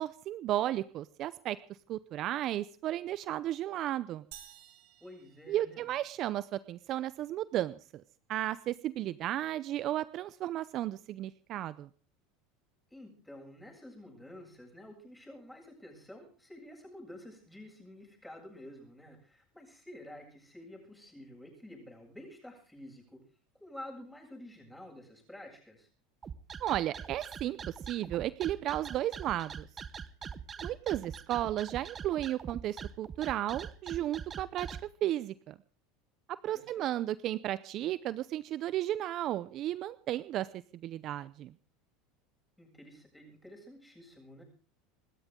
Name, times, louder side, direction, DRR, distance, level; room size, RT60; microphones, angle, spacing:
voice 1, 0.0-1.6 1.9-4.2 5.5-7.8 8.3-11.9 26.6-29.7 30.6-34.7 35.0-35.5 36.3-40.5 40.8-41.5, right 13 dB, 50° right, 16 dB, 0.7 m, -34 dB
sound 1, 4.3-6.2, right 12 dB, 70° right, 3.1 m, -54 dB
voice 2, 5.0-5.9 12.9-23.2 23.5-25.9 36.5-36.9 42.6-44.4, left 1 dB, 5° left, 1 dB, 7.8 m, -50 dB
sound 2, 26.2-34.8, right 7 dB, 30° right, 1.0 m, -43 dB
26.5 x 12.5 x 3.8 m, 0.40 s
supercardioid pair, 100°, 0 cm